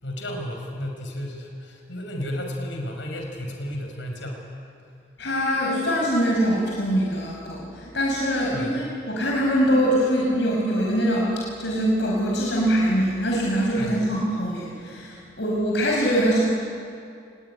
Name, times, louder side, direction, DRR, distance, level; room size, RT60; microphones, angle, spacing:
voice 1, 0.0-4.4 8.5-8.7 13.8-14.0, equal, 85° left, 2 dB, 5.4 m, -33 dB
voice 2, 5.2-16.4, equal, 70° left, -3 dB, 5.5 m, -23 dB
24.0 x 21.0 x 9.9 m, 2.4 s
head